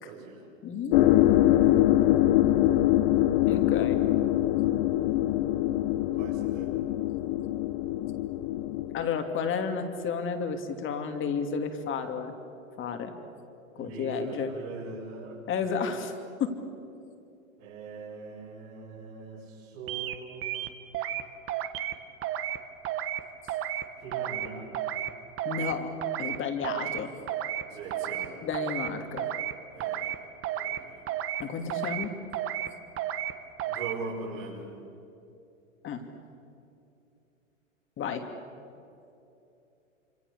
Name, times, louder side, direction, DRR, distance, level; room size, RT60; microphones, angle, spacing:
voice 1, 0.0-0.4 6.1-6.7 13.7-15.4 17.6-20.6 24.0-24.7 27.7-28.3 29.7-30.2 30.6-31.0 33.7-34.6, right 4 dB, 65° right, -6 dB, 6.2 m, -41 dB
voice 2, 0.6-1.8 3.4-4.0 8.9-12.3 12.8-13.1 13.8-14.5 15.5-16.1 16.4-16.5 25.4-25.9 26.2-27.1 28.4-29.3 31.4-32.1 35.8-36.0 38.0-38.2, left 6 dB, 30° left, 6 dB, 2.8 m, -32 dB
sound 1, 0.9-9.1, left 14 dB, 45° left, 1.0 m, -24 dB
sound 2, 19.9-20.1 20.4-21.2 21.5-21.9 22.2-22.6 22.8-23.2 23.5-23.8 24.1-24.5 24.7-25.1 25.4-25.7 26.0-26.4 26.6-27.0 27.3-27.6 27.9-28.3 28.5-28.9 29.2-29.5 29.8-30.2 30.4-30.8 31.1-31.4 31.7-32.1 32.3-32.7 33.0-33.3 33.6-33.9, right 11 dB, 35° right, 1.6 m, -32 dB
27.0 x 26.0 x 6.9 m, 2.8 s
hypercardioid pair, 110°, 40 cm